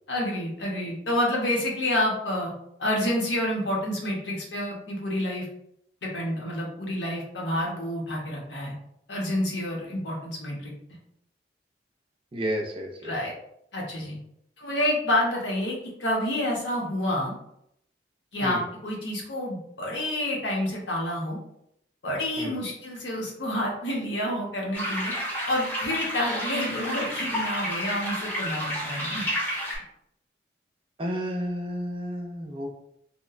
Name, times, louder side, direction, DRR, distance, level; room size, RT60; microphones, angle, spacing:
voice 1, 0.1-2.5 2.8-5.5 6.0-8.7 9.1-10.7 13.0-13.3 13.7-14.2 14.6-17.3 18.3-21.4 22.0-25.1 25.5-29.2, left 1 dB, 85° left, -2 dB, 0.8 m, -28 dB
voice 2, 12.3-13.2 18.4-18.6 22.4-22.5 31.0-32.7, equal, 30° right, 1 dB, 0.4 m, -31 dB
sound 1, 24.7-29.8, equal, 10° left, 0.6 m, -31 dB
2.9 x 2.1 x 2.4 m, 0.75 s
head